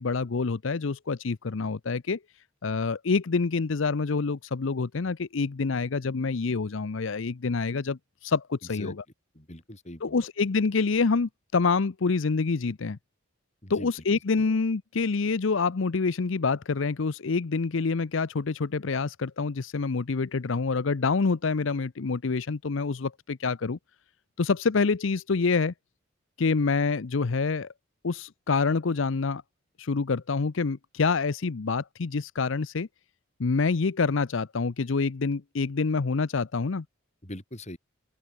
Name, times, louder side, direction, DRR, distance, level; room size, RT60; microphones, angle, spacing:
voice 1, 0.0-2.2 2.6-9.0 10.0-13.0 13.7-23.8 24.4-25.7 26.4-27.7 28.0-29.4 29.8-32.9 33.4-36.8, left 4 dB, 65° left, 0.6 m, -27 dB
voice 2, 9.3-10.3 13.6-13.9 14.4-14.5 37.2-37.8, left 1 dB, 35° left, 4.1 m, -41 dB
open air
head